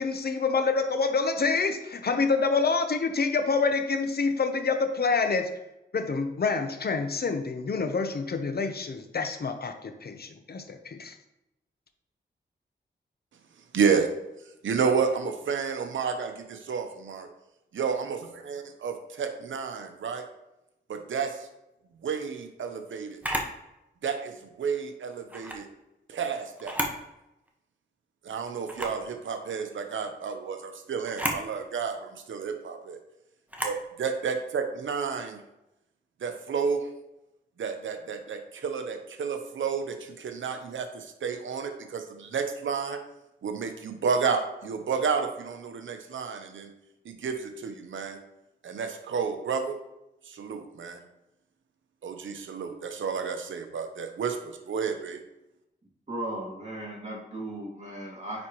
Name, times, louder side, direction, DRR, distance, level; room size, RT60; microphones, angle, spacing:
voice 1, 0.0-5.5 5.9-11.2, left 4 dB, 55° left, 8 dB, 0.8 m, -27 dB
voice 2, 13.7-14.1 14.6-17.3 17.7-18.2 18.5-20.2 20.9-21.5 22.0-23.2 24.0-25.7 26.1-26.8 28.2-33.0 33.6-35.4 36.2-36.9 37.6-43.0 43.4-46.7 47.0-48.2 48.6-49.8 50.3-51.0 52.0-55.2, right 6 dB, 85° right, 6 dB, 0.8 m, -31 dB
Camera, 23.2-23.6 25.3-25.6 26.6-27.0 27.5-27.6 28.7-29.0 31.1-31.4 33.5-33.8, right 1 dB, 10° right, 1.2 m, -31 dB
voice 3, 56.1-58.5, right 1 dB, 35° right, -4 dB, 2.4 m, -36 dB
9.6 x 4.3 x 3.0 m, 0.91 s
cardioid pair, 55°, 19 cm